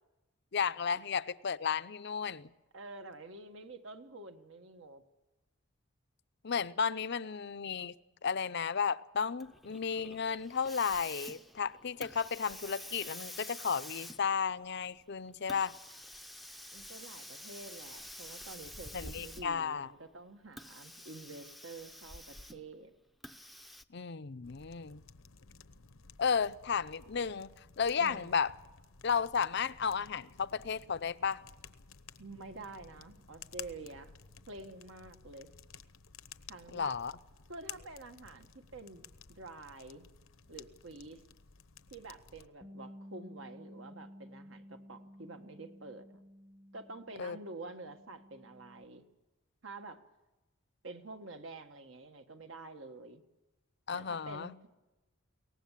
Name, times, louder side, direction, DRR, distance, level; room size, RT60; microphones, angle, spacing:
voice 1, 0.5-2.5 6.4-7.9 8.2-15.7 18.9-19.9 23.9-25.0 26.2-28.5 29.0-31.4 36.7-37.1 47.2-47.4 53.9-54.5, left 6 dB, 55° left, 0.6 m, -33 dB
voice 2, 2.7-5.0 16.7-22.9 28.0-28.4 32.2-34.1 34.5-35.5 36.5-37.0 37.5-40.1 40.5-41.2 41.9-46.2 46.7-49.1 49.6-50.0 50.8-53.2 53.9-54.7, right 2 dB, 65° right, 1.6 m, -48 dB
Hiss, 9.4-19.7 20.5-22.7 23.2-23.8, left 1 dB, ahead, 0.6 m, -48 dB
sound 1, 24.4-42.5, left 7 dB, 80° left, 0.9 m, -54 dB
Bass guitar, 42.6-48.9, equal, 20° right, 1.1 m, -54 dB
23.0 x 18.5 x 7.5 m
head